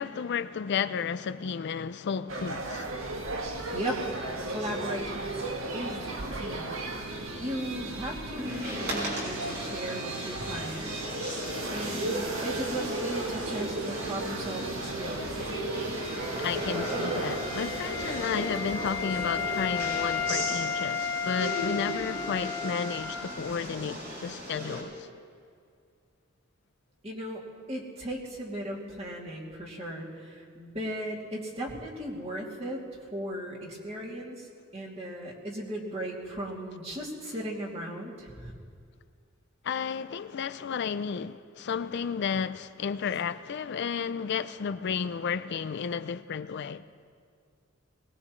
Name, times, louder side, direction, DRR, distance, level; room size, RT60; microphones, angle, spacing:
voice 1, 0.0-2.9 16.4-25.1 39.6-46.8, left 6 dB, 60° left, 0.4 m, -32 dB
sound 1, 2.3-20.6, right 2 dB, 90° right, 1.6 m, -35 dB
voice 2, 3.7-5.4 5.7-6.0 6.3-6.7 7.2-11.0 11.7-15.4 27.0-27.4 27.7-32.8 33.1-34.5 34.7-38.5, right 1 dB, 30° right, 2.7 m, -36 dB
sound 2, 8.3-24.8, equal, 55° right, 5.3 m, -37 dB
Wind instrument woodwind instrument, 15.9-23.7, left 7 dB, 20° left, 1.9 m, -34 dB
21.5 x 19.5 x 3.2 m
head